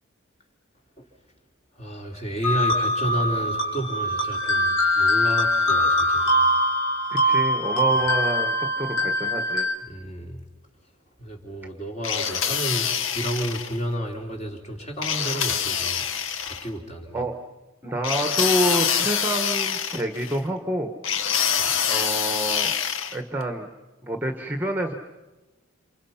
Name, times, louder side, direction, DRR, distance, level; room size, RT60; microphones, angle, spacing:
voice 1, 1.7-6.5 9.9-10.4 11.2-16.0 16.5-17.3 21.6-21.7, right 1 dB, 30° left, 2 dB, 3.8 m, -31 dB
sound 1, 2.4-9.7, equal, 85° left, 3.8 m, -22 dB
voice 2, 7.1-9.7 17.1-17.4 17.8-20.9 21.8-22.7 23.1-23.7 24.0-24.9, right 1 dB, 10° right, 5 dB, 1.3 m, -27 dB
sound 2, 12.0-13.8 15.0-16.7 18.0-20.4 21.0-23.2, left 8 dB, 60° left, 1.1 m, -25 dB
29.5 x 27.5 x 5.8 m, 1.1 s
head